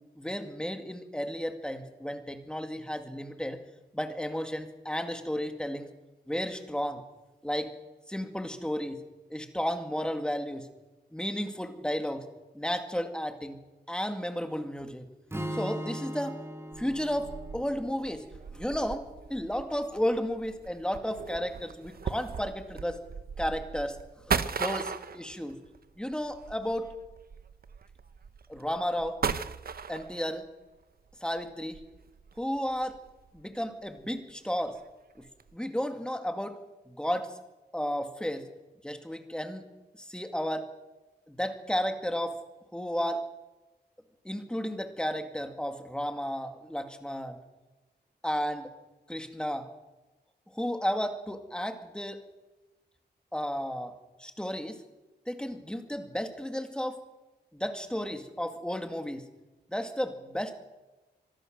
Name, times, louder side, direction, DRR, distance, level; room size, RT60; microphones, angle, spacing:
voice 1, 0.0-3.6 3.9-5.9 6.3-7.0 7.4-7.7 8.1-9.0 9.3-10.7 11.1-12.3 12.5-13.6 13.9-15.1 15.5-16.4 16.8-18.3 18.5-19.0 19.3-23.0 23.4-24.0 24.3-25.6 26.0-26.9 28.5-29.2 29.9-30.5 31.2-31.8 32.4-33.0 33.3-34.8 35.2-35.3 35.5-36.6 36.9-37.4 37.7-38.5 38.8-39.6 40.0-40.7 41.3-42.4 42.7-43.2 44.2-47.4 48.2-48.7 49.1-49.7 50.5-52.2 53.3-54.8 55.3-57.0 57.5-59.3 59.7-60.6, equal, 5° left, 6 dB, 2.2 m, -33 dB
Strum, 15.3-19.5, right 1 dB, 15° right, 2.6 m, -40 dB
sound 1, 16.7-30.5 31.1-33.6 33.9-34.0 34.6-34.9 35.2-35.5, right 6 dB, 60° right, 1.0 m, -38 dB
25.0 x 19.5 x 6.6 m, 1.1 s
wide cardioid pair, 140°, 18 cm